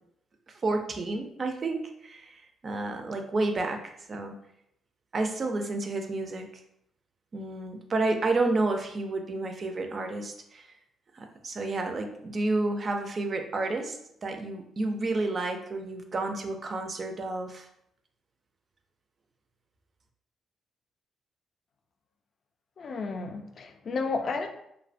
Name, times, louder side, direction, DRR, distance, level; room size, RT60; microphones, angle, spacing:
voice 1, 0.6-4.3 5.1-6.5 7.3-10.7 11.1-17.7, right 2 dB, 40° right, 5 dB, 0.4 m, -30 dB
voice 2, 22.8-24.5, left 4 dB, 50° left, 5 dB, 0.3 m, -32 dB
2.7 x 2.1 x 2.5 m, 0.76 s
cardioid pair, 110°, 0 cm